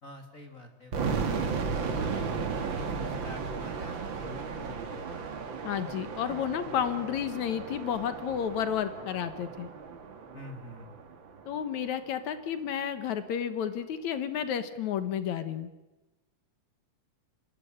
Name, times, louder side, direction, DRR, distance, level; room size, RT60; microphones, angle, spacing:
voice 1, 0.0-5.4 10.3-10.9, left 1 dB, 35° left, 5 dB, 1.5 m, -47 dB
sound 1, 0.9-11.8, right 5 dB, 45° right, 1.9 m, -35 dB
voice 2, 5.6-9.7 11.5-15.7, left 9 dB, 65° left, 11 dB, 2.3 m, -31 dB
27.0 x 12.5 x 10.0 m, 1.0 s
omnidirectional pair, 4.0 m